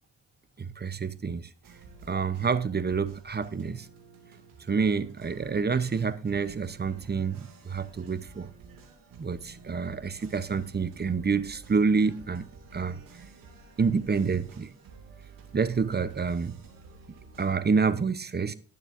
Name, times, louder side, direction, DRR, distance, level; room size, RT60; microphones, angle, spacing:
voice 1, 0.6-1.5 2.1-3.9 4.7-8.5 9.2-12.4 12.7-13.0 13.8-14.7 15.5-16.6 17.4-18.5, right 5 dB, 30° right, 0.9 m, -28 dB
sound 1, 1.6-17.6, right 4 dB, 90° right, 2.6 m, -51 dB
19.0 x 7.0 x 2.7 m
cardioid pair, 65°, 33 cm